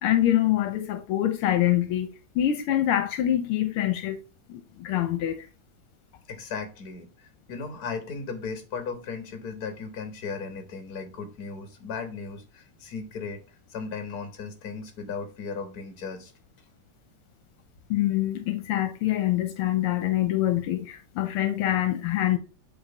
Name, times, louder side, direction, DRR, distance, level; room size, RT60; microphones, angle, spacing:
voice 1, 0.0-4.2 4.5-5.5 17.9-22.4, left 12 dB, 80° left, 1.6 m, -25 dB
voice 2, 6.3-13.4 13.7-16.3, left 5 dB, 45° left, 1.9 m, -36 dB
8.0 x 4.0 x 4.0 m
omnidirectional pair, 2.4 m